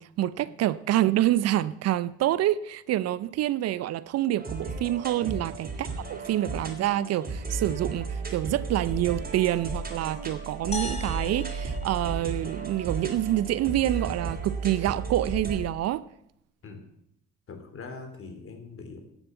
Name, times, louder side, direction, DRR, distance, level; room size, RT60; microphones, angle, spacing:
voice 1, 0.0-16.0, right 13 dB, 55° right, 0.6 m, -27 dB
sound 1, 4.4-15.6, right 3 dB, 30° right, 3.6 m, -34 dB
voice 2, 5.2-5.5 16.6-16.9 17.5-19.0, left 4 dB, 45° left, 3.4 m, -42 dB
sound 2, 10.7-13.2, left 2 dB, 20° left, 2.6 m, -39 dB
11.0 x 7.3 x 8.1 m
hypercardioid pair, 65°, 30 cm